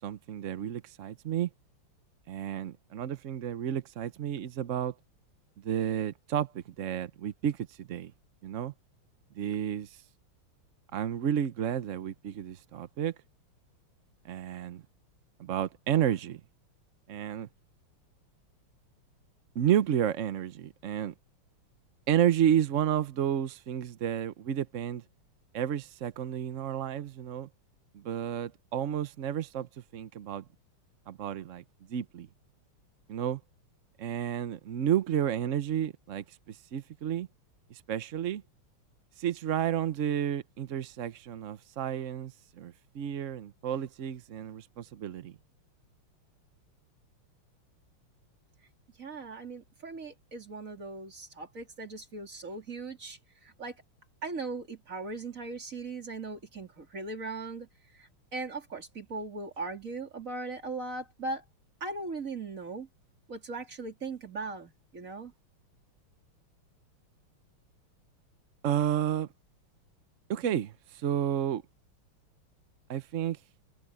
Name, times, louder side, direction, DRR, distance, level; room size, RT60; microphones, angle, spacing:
voice 1, 0.0-1.5 2.3-4.9 5.6-8.1 8.4-8.7 9.4-10.0 10.9-13.1 14.2-14.8 15.4-16.4 17.1-17.5 19.5-21.1 22.1-25.0 25.5-27.5 27.9-30.4 31.1-31.6 31.9-32.3 33.1-33.4 34.0-37.3 37.7-38.4 39.2-45.4 68.6-69.3 70.3-71.6 72.9-73.4, right 10 dB, 70° right, 0.7 m, -31 dB
voice 2, 49.0-53.8 54.2-57.7 58.0-61.4 61.8-62.9 63.3-65.3, right 3 dB, 35° right, 3.6 m, -39 dB
omnidirectional pair, 2.4 m